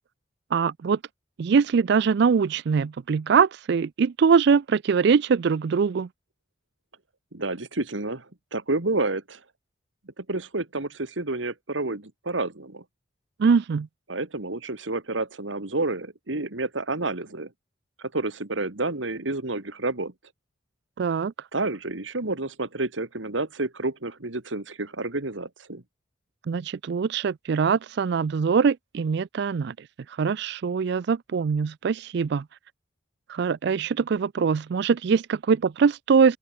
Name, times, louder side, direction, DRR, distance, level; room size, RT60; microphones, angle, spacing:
voice 1, 0.5-1.0 1.4-6.1 13.4-13.9 21.0-21.3 26.5-29.7 30.2-32.4 33.3-36.4, right 6 dB, 60° right, 0.4 m, -22 dB
voice 2, 7.3-8.3 8.5-9.4 10.2-12.8 14.1-17.5 18.0-20.1 21.5-25.8, right 2 dB, 80° right, 2.1 m, -29 dB
open air
head